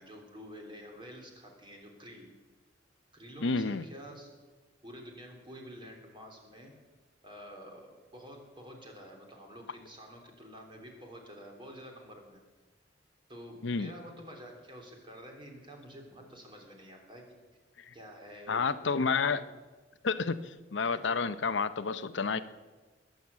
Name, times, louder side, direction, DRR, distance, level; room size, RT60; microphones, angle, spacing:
voice 1, 0.0-2.3 3.1-4.3 4.8-6.8 7.2-12.4 13.3-17.2 17.9-18.6 20.9-21.2, equal, 25° right, 2 dB, 3.4 m, -49 dB
voice 2, 3.4-3.8 13.6-13.9 17.8-17.9 18.5-19.5 20.0-22.4, left 4 dB, 70° left, 12 dB, 0.7 m, -30 dB
21.0 x 7.8 x 8.4 m, 1.3 s
head